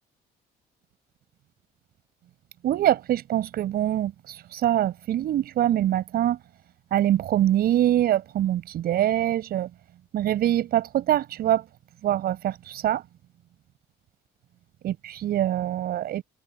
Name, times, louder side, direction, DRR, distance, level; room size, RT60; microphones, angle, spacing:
voice 1, 2.6-6.4 6.9-9.7 10.1-11.6 12.0-13.0 14.8-16.2, right 12 dB, 65° right, 7.8 m, -24 dB
cardioid pair, 110°, 17 cm